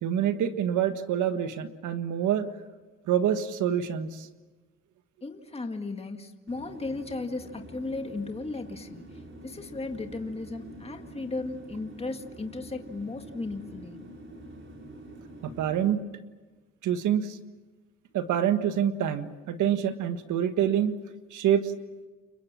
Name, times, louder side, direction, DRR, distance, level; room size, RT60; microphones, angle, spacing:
voice 1, 0.0-2.5 3.1-4.3 15.4-16.0 16.8-17.4 18.1-20.9 21.3-21.7, right 9 dB, 80° right, 9 dB, 1.6 m, -26 dB
voice 2, 5.2-14.0, left 3 dB, 20° left, 5 dB, 1.9 m, -36 dB
sound 1, 6.5-15.9, right 1 dB, 40° right, 5.0 m, -46 dB
29.5 x 24.0 x 7.4 m, 1.3 s
cardioid pair, 90°, 30 cm